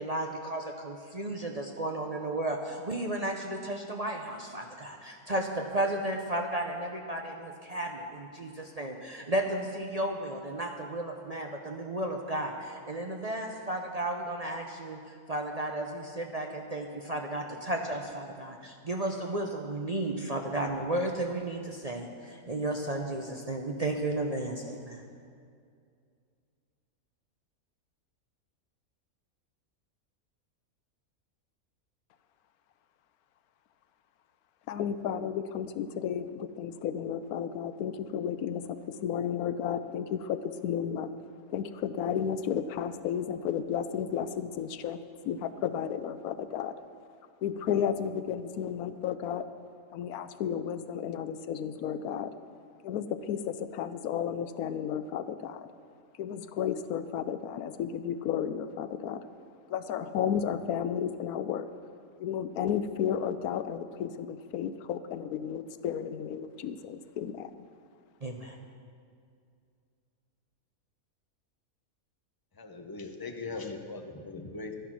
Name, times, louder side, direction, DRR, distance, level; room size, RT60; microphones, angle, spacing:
voice 1, 0.0-25.0 68.2-68.6, right 1 dB, 35° right, 2 dB, 0.6 m, -33 dB
voice 2, 34.7-41.1 41.5-45.0 45.3-46.7 47.4-49.4 49.9-52.3 52.8-55.7 56.2-59.3 59.7-61.7 62.2-67.5, left 8 dB, 85° left, 12 dB, 1.1 m, -33 dB
voice 3, 72.6-74.7, left 3 dB, 20° left, 5 dB, 0.7 m, -40 dB
12.5 x 10.0 x 6.1 m, 2.3 s
omnidirectional pair, 1.5 m